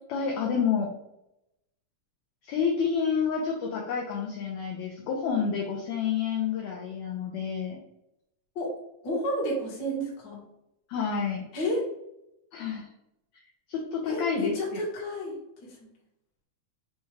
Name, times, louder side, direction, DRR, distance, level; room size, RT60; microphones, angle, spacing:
voice 1, 0.1-0.9 2.4-7.8 10.9-11.4 12.5-12.9 13.7-14.8, left 6 dB, 80° left, 0 dB, 1.6 m, -29 dB
voice 2, 9.0-10.4 11.5-11.9 14.1-15.4 15.6-15.8, equal, 55° left, -4 dB, 1.2 m, -31 dB
5.3 x 2.4 x 3.1 m, 0.83 s
omnidirectional pair, 3.8 m